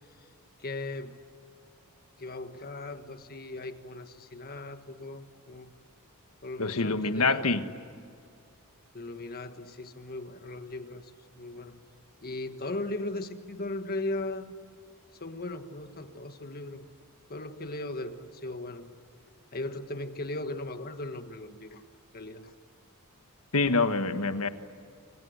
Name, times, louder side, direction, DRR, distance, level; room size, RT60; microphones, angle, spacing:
voice 1, 0.6-1.2 2.2-5.7 6.4-7.5 8.9-11.1 11.3-11.8 12.2-14.5 15.2-16.9 17.3-18.9 19.5-21.8 22.1-22.5, left 2 dB, 45° left, 8 dB, 1.6 m, -38 dB
voice 2, 6.6-7.6 23.5-24.5, left 3 dB, 75° left, 9 dB, 1.5 m, -26 dB
29.0 x 25.5 x 8.1 m, 2.3 s
head